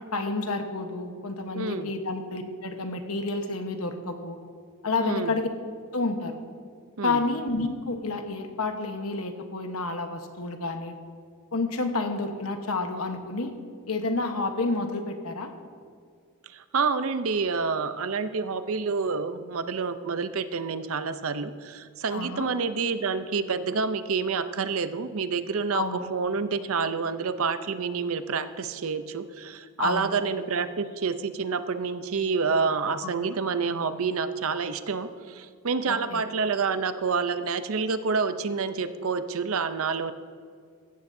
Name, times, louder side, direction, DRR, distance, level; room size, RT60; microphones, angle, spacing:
voice 1, 0.1-4.4 4.8-5.5 5.9-6.4 7.0-10.9 11.5-13.5 13.9-15.5 22.1-22.5 25.7-26.0 29.8-30.1 33.0-33.4 35.9-36.2, left 3 dB, 70° left, 6 dB, 1.2 m, -30 dB
voice 2, 1.5-1.9 5.0-5.4 7.0-7.2 16.5-40.1, right 5 dB, 65° right, 11 dB, 0.6 m, -28 dB
16.0 x 14.0 x 2.7 m, 2.1 s
head